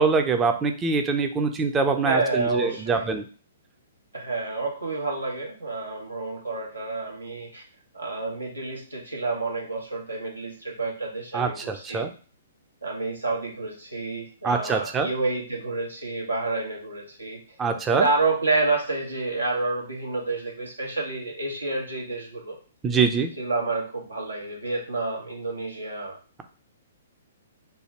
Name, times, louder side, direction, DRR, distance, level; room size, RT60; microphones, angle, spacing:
voice 1, 0.0-3.2 11.3-12.1 14.4-15.1 17.6-18.1 22.8-23.3, right 5 dB, 15° right, 6 dB, 0.5 m, -24 dB
voice 2, 2.0-3.1 4.1-7.6 7.9-12.0 12.8-17.4 17.9-22.6 23.4-26.4, right 3 dB, 85° right, -1 dB, 1.2 m, -29 dB
3.4 x 2.2 x 4.3 m, 0.38 s
figure-of-eight pair, 120°, 0 cm